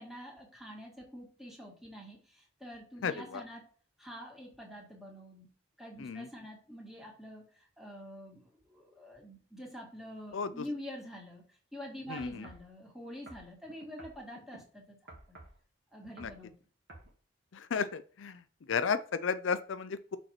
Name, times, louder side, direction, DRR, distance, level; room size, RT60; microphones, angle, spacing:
voice 1, 0.0-3.7 4.0-5.5 5.8-15.0 15.3-15.4 15.9-16.6, equal, ahead, -2 dB, 2.0 m, -46 dB
voice 2, 3.0-3.4 6.0-6.3 10.3-10.5 12.1-12.5 16.2-16.3 17.5-18.4 18.7-20.2, left 6 dB, 70° left, 12 dB, 0.5 m, -33 dB
sound 1, 12.2-12.7 13.3-14.6 15.1-15.6 16.0-16.4 16.9-17.1 17.7-17.8, right 2 dB, 55° right, 1.8 m, -52 dB
6.4 x 4.5 x 4.4 m, 0.43 s
head